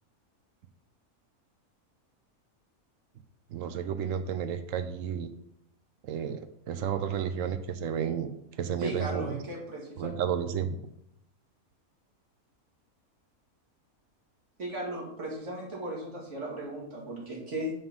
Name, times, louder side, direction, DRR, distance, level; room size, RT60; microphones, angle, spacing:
voice 1, 3.5-5.3 6.0-8.3 8.6-9.4 10.0-10.8, right 8 dB, 65° right, 10 dB, 0.9 m, -32 dB
voice 2, 8.8-10.1 14.6-17.7, right 1 dB, 50° right, -3 dB, 2.5 m, -36 dB
5.6 x 5.5 x 5.4 m, 0.77 s
omnidirectional pair, 1.6 m